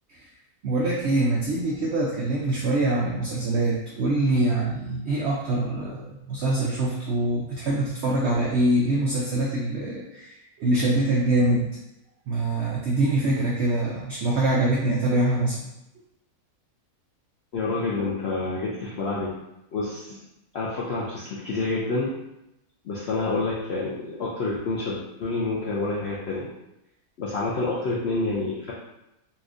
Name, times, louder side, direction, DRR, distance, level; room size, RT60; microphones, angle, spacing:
voice 1, 0.6-11.7 12.3-15.7, right 1 dB, 85° right, -3 dB, 0.5 m, -24 dB
voice 2, 17.5-19.3 19.7-20.2 20.5-22.1 22.8-26.5 27.2-28.7, left 3 dB, 75° left, -5 dB, 0.5 m, -28 dB
4.1 x 2.4 x 2.5 m, 0.89 s
omnidirectional pair, 1.7 m